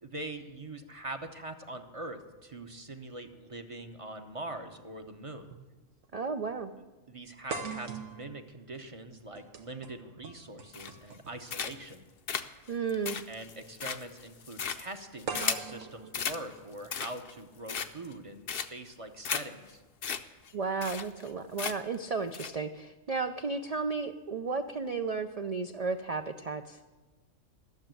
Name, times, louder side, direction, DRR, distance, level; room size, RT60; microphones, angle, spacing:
voice 1, 0.0-5.5 7.1-12.1 13.3-19.8, right 2 dB, 30° right, 6 dB, 0.7 m, -43 dB
sound 1, 4.3-4.4 5.5-5.7 6.0-6.1 7.5-11.5 12.7-12.9 15.3-17.3, right 5 dB, 90° right, 1.4 m, -42 dB
voice 2, 6.1-6.7 12.7-13.2 20.5-26.8, right 4 dB, 60° right, 7 dB, 0.4 m, -33 dB
sound 2, 10.7-11.2 11.5-11.9 12.3-15.7 16.1-16.4 16.8-17.3 17.7-18.1 18.5-18.9 19.2-19.4 19.7-19.8 20.0-20.2 20.5-20.6 20.8-21.3 21.6-22.0 22.3-22.5, left 7 dB, 55° left, 0.8 m, -35 dB
13.5 x 7.1 x 9.0 m, 1.2 s
omnidirectional pair, 1.3 m